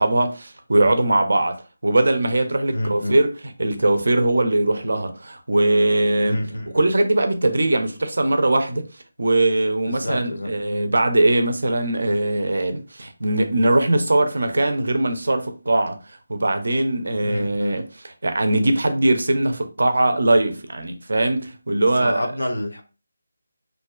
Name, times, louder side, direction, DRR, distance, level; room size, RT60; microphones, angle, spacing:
voice 1, 0.0-6.4 6.7-8.9 9.2-16.0 16.3-17.9 18.2-22.3, right 2 dB, 70° right, 0.5 m, -20 dB
voice 2, 2.7-3.2 6.2-6.7 9.8-10.5 17.2-17.8 22.0-22.8, left 1 dB, 85° left, 0.6 m, -28 dB
2.5 x 2.1 x 2.3 m
figure-of-eight pair, 165°, 0 cm